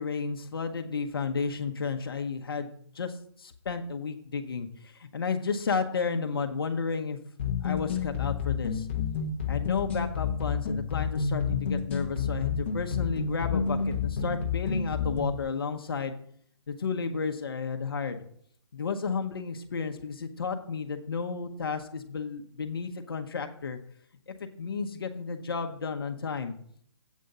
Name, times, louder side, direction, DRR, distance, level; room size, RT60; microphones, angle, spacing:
voice 1, 0.0-7.2 7.6-8.9 9.5-16.1 16.7-18.2 18.7-23.8 24.3-26.5, left 5 dB, 55° left, 5 dB, 0.9 m, -32 dB
sound 1, 7.4-15.4, left 6 dB, 25° left, 0.8 m, -30 dB
8.3 x 5.1 x 6.7 m, 0.63 s
hypercardioid pair, 180°, 15 cm